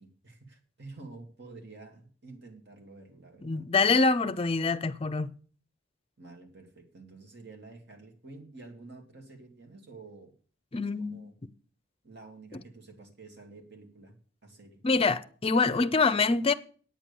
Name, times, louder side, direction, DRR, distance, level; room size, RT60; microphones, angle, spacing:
voice 1, 0.0-3.7 6.2-10.3 11.0-11.3 12.0-14.1 14.4-14.8, right 3 dB, 55° right, 2.4 m, -49 dB
voice 2, 3.4-5.3 10.7-11.3 12.5-12.6 14.8-16.5, left 4 dB, 30° left, 0.6 m, -25 dB
9.0 x 9.0 x 6.9 m
head